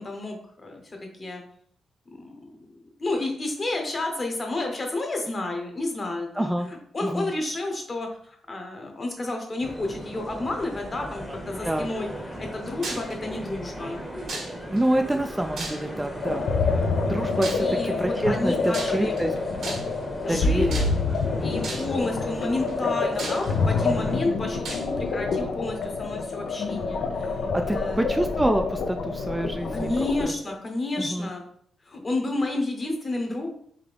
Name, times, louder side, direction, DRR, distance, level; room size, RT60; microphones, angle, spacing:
voice 1, 0.0-1.4 2.1-14.0 17.6-19.1 20.2-20.7 21.4-28.0 29.7-31.4 31.8-33.5, left 2 dB, 40° left, 3 dB, 1.1 m, -31 dB
voice 2, 6.4-6.7 7.0-7.3 11.6-11.9 14.7-16.5 17.0-19.3 20.3-20.9 27.5-29.9 30.2-30.3 31.0-31.3, right 1 dB, 10° right, 5 dB, 0.3 m, -26 dB
sound 1, 9.6-24.2, equal, 10° left, 0.9 m, -37 dB
sound 2, 12.8-13.1 14.3-14.8 15.6-16.1 17.4-17.7 18.7-19.2 19.6-20.0 20.7-21.2 21.6-22.0 22.7-22.8 23.2-23.9 24.6-24.9, right 3 dB, 70° right, 1.2 m, -35 dB
sound 3, 16.2-30.3, left 4 dB, 75° left, 0.5 m, -27 dB
3.7 x 2.8 x 3.4 m, 0.64 s
supercardioid pair, 60°, 0 cm